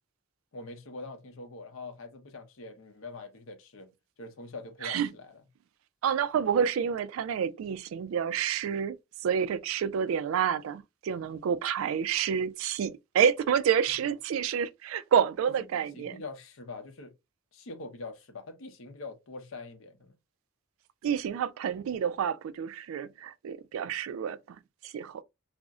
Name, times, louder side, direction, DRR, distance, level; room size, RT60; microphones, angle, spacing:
voice 1, 0.5-3.9 4.2-5.4 15.6-17.1 17.5-20.2, left 3 dB, 85° left, 0.7 m, -44 dB
voice 2, 6.0-9.0 9.2-16.1 21.0-24.4 24.8-25.2, right 7 dB, 85° right, 0.3 m, -28 dB
2.5 x 2.0 x 3.5 m
head